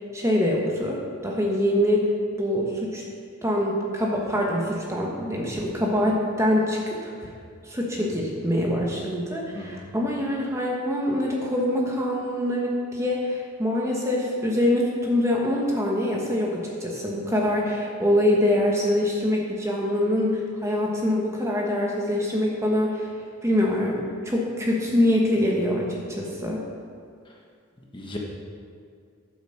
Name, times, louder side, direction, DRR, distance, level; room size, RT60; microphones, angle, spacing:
voice 1, 0.1-3.0 3.4-7.3 7.7-23.1 23.4-26.6, left 1 dB, 15° right, -2 dB, 1.2 m, -24 dB
voice 2, 8.0-8.2 9.5-9.8 27.9-28.2, left 1 dB, 20° left, -2 dB, 1.2 m, -36 dB
9.2 x 7.8 x 6.5 m, 2.2 s
head